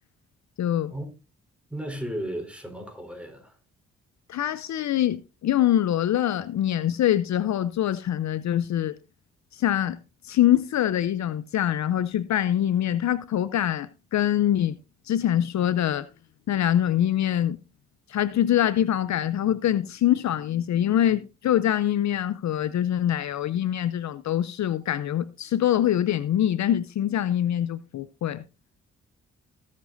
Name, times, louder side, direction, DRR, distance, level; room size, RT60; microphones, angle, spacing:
voice 1, 0.6-0.9 4.3-9.0 9.5-10.0 10.2-14.8 15.0-16.1 16.5-17.6 18.1-28.4, left 11 dB, 60° left, 0.6 m, -24 dB
voice 2, 1.7-3.6, right 1 dB, 5° right, 4.0 m, -34 dB
19.5 x 7.5 x 2.6 m
supercardioid pair, 45°, 32 cm